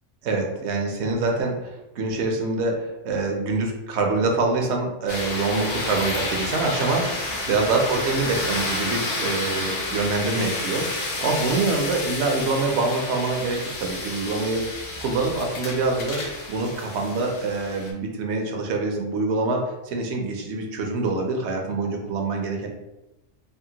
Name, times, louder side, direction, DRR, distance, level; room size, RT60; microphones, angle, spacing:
voice 1, 0.2-14.6 15.0-16.2 16.5-22.7, right 3 dB, 70° right, 2 dB, 0.9 m, -25 dB
sound 1, 5.1-17.9, left 2 dB, 70° left, 1.0 m, -30 dB
3.5 x 2.1 x 2.8 m, 0.96 s
omnidirectional pair, 1.3 m